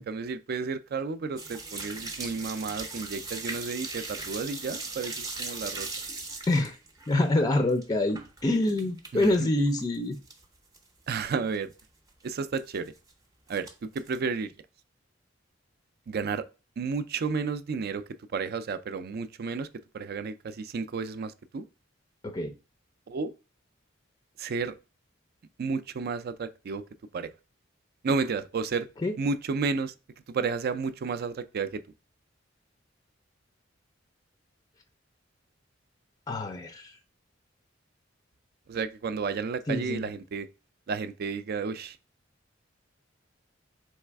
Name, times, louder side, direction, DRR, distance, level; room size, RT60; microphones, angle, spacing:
voice 1, 0.0-5.9 9.1-9.5 11.1-11.7 12.2-12.9 13.5-14.5 16.1-16.4 16.8-18.0 18.3-19.7 19.9-21.7 23.1-23.3 24.4-24.7 25.6-26.8 27.1-27.3 28.0-28.9 29.2-29.9 30.3-31.8 38.7-40.5 40.9-42.0, right 4 dB, 55° right, 0.4 m, -32 dB
sound 1, 1.4-9.4 9.7-10.4 10.7-10.8 11.3-11.4 11.5-11.8 12.6-13.1 13.5-14.2, right 3 dB, 20° right, 0.7 m, -39 dB
voice 2, 7.1-10.2 22.2-22.5 29.0-29.1 36.3-37.0 39.7-40.1, left 2 dB, 20° left, 0.4 m, -26 dB
4.2 x 3.2 x 3.4 m
head